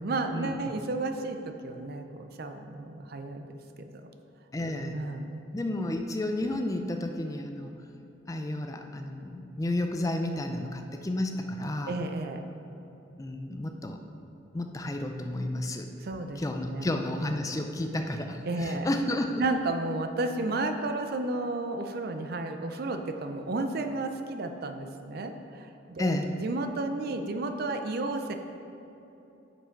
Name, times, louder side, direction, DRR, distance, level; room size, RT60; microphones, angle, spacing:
voice 1, 0.0-3.5 3.8-3.9 4.9-5.4 11.9-12.5 16.0-16.4 16.7-16.9 18.5-18.9 19.4-28.4, right 2 dB, 55° right, 7 dB, 0.5 m, -32 dB
voice 2, 4.5-5.0 5.5-7.7 8.3-12.0 13.2-14.0 14.5-15.9 16.4-19.4 26.0-26.3, left 1 dB, 20° left, 5 dB, 0.4 m, -31 dB
6.9 x 6.0 x 4.5 m, 3.0 s
head